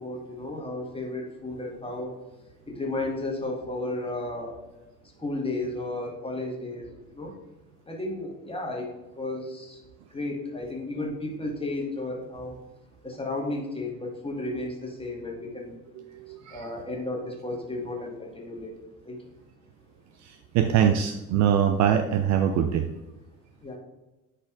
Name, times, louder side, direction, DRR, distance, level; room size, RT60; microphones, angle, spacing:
voice 1, 0.0-2.2 2.7-4.6 5.2-7.3 7.9-8.9 9.1-9.8 10.1-12.6 13.0-15.8 16.3-18.7 19.0-19.2 23.6-23.8, left 2 dB, 15° left, -1 dB, 1.7 m, -33 dB
voice 2, 16.0-16.7 20.2-22.9, right 9 dB, 40° right, 8 dB, 0.5 m, -23 dB
9.6 x 4.1 x 2.5 m, 1.0 s
figure-of-eight pair, 55°, 42 cm